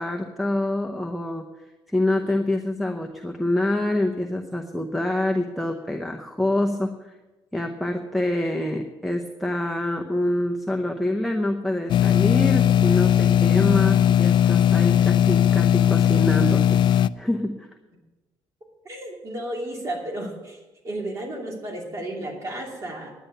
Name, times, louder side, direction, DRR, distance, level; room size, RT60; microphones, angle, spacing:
voice 1, 0.0-1.5 1.9-7.1 7.5-16.8 17.1-17.7, left 1 dB, ahead, 1 dB, 0.7 m, -26 dB
sound 1, 11.9-17.1, left 10 dB, 60° left, 0.3 m, -18 dB
voice 2, 18.8-20.6 20.8-23.1, right 1 dB, 35° right, -1 dB, 2.7 m, -33 dB
10.5 x 10.0 x 6.7 m, 1.1 s
cardioid pair, 160°, 9 cm